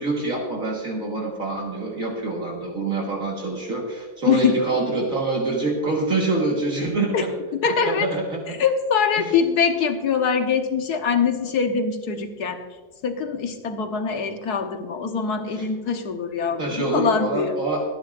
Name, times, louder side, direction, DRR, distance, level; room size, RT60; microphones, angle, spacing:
voice 1, 0.0-7.1 7.9-8.6 9.2-9.3 15.6-15.7 16.6-17.8, right 3 dB, 55° right, -2 dB, 1.9 m, -25 dB
voice 2, 4.2-4.6 7.1-7.2 7.5-8.1 8.5-12.6 13.0-17.5, left 6 dB, 70° left, 6 dB, 1.6 m, -23 dB
23.5 x 9.9 x 2.5 m, 1.3 s
omnidirectional pair, 1.8 m